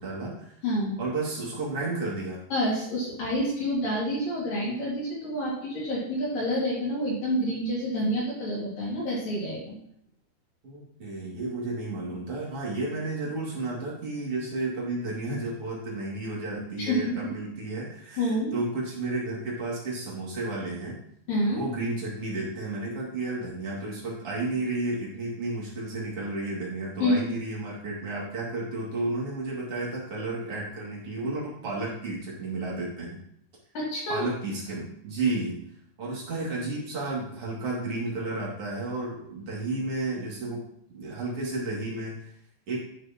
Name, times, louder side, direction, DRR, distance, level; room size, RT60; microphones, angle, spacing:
voice 1, 0.0-0.5 1.0-2.4 10.6-20.9 21.5-33.2 34.1-35.6 36.0-40.6 40.9-42.3 42.7-42.8, right 2 dB, 40° right, -5 dB, 2.5 m, -32 dB
voice 2, 0.6-1.0 2.5-9.7 16.8-17.2 18.2-18.5 21.3-21.6 27.0-27.4 33.7-34.3, equal, 55° left, -6 dB, 3.5 m, -28 dB
12.0 x 6.3 x 2.9 m, 0.69 s
omnidirectional pair, 5.5 m